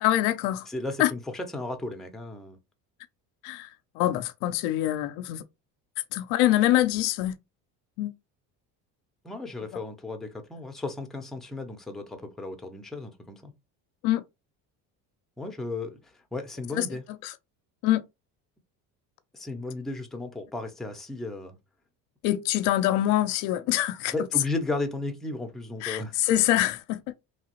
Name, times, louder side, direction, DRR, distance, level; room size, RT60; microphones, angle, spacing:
voice 1, 0.0-0.7 1.0-1.1 3.4-3.7 3.9-5.4 6.1-7.4 8.0-8.1 14.0-14.2 16.7-16.9 17.2-17.3 17.8-18.0 22.2-24.1 25.8-27.0, left 14 dB, 75° left, 0.5 m, -24 dB
voice 2, 0.7-2.6 9.2-13.5 15.4-17.0 19.3-21.6 24.1-26.1, left 2 dB, ahead, 0.6 m, -34 dB
3.0 x 2.4 x 2.9 m
supercardioid pair, 90°, 42 cm